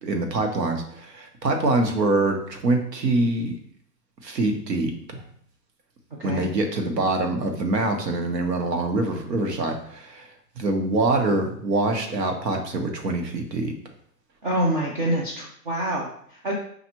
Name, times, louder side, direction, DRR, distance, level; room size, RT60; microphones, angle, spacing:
voice 1, 0.0-3.5 4.2-5.2 6.2-10.3 10.6-13.7, right 2 dB, 75° right, 4 dB, 1.2 m, -24 dB
voice 2, 6.2-6.5 14.4-16.5, right 1 dB, 35° right, -2 dB, 0.5 m, -26 dB
5.5 x 2.5 x 3.0 m, 0.64 s
hypercardioid pair, 150°, 49 cm